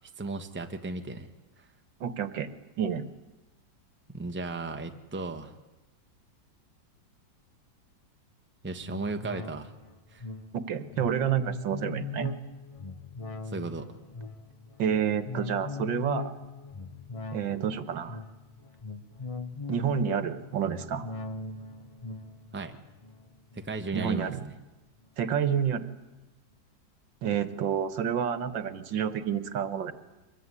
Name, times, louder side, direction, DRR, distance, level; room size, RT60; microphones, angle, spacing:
voice 1, 0.2-1.3 4.1-5.5 8.6-9.7 10.1-10.2 13.4-13.9 22.5-22.8 23.5-24.5, right 3 dB, 5° right, 6 dB, 1.1 m, -35 dB
voice 2, 2.0-2.5 2.8-3.1 10.7-12.3 14.8-16.3 17.3-18.2 19.7-21.1 23.9-24.4 25.2-25.9 27.2-29.9, right 8 dB, 75° right, 13 dB, 1.9 m, -29 dB
sound 1, 8.8-24.6 25.0-25.1, left 4 dB, 30° left, 0.6 m, -41 dB
24.5 x 21.5 x 9.8 m, 1.1 s
omnidirectional pair, 2.1 m